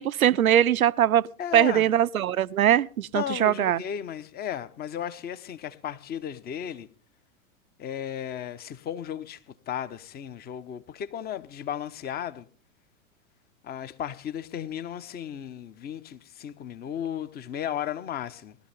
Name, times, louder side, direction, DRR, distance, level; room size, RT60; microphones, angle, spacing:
voice 1, 0.0-1.3 1.5-3.8, right 11 dB, 75° right, 0.6 m, -21 dB
voice 2, 1.4-1.9 3.1-6.9 7.8-12.5 13.6-18.6, left 9 dB, 20° left, 0.9 m, -35 dB
19.0 x 12.5 x 3.5 m
figure-of-eight pair, 95°, 42 cm